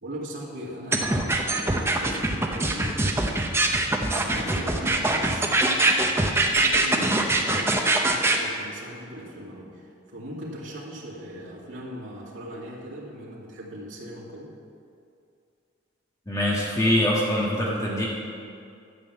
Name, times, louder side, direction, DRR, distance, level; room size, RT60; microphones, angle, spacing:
voice 1, 0.0-3.6 4.1-14.5, equal, 75° right, -6 dB, 2.4 m, -39 dB
sound 1, 0.9-8.4, right 2 dB, 10° right, 0.7 m, -23 dB
voice 2, 16.3-18.1, left 1 dB, 15° left, -5 dB, 1.7 m, -23 dB
12.5 x 6.1 x 8.2 m, 2.4 s
head